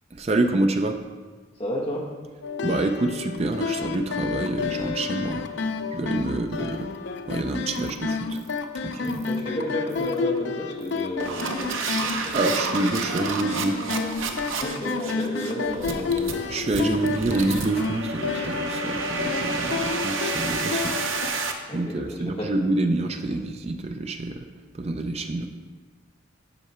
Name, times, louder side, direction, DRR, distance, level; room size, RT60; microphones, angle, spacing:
voice 1, 0.1-1.0 2.6-6.9 7.3-8.4 8.8-9.3 12.3-13.8 16.5-21.0 21.7-24.5 24.7-25.5, right 2 dB, 30° right, 5 dB, 0.4 m, -27 dB
voice 2, 1.6-2.1 9.0-12.4 14.6-17.2 21.7-22.5 23.3-23.4, equal, 30° left, -2 dB, 1.2 m, -32 dB
sound 1, 2.4-21.3, left 5 dB, 60° left, 0.4 m, -31 dB
sound 2, 7.8-8.0 8.3-8.6 9.0-9.4 9.9-10.2 10.8-21.5, right 4 dB, 70° right, 0.7 m, -30 dB
8.0 x 5.6 x 4.2 m, 1.4 s
head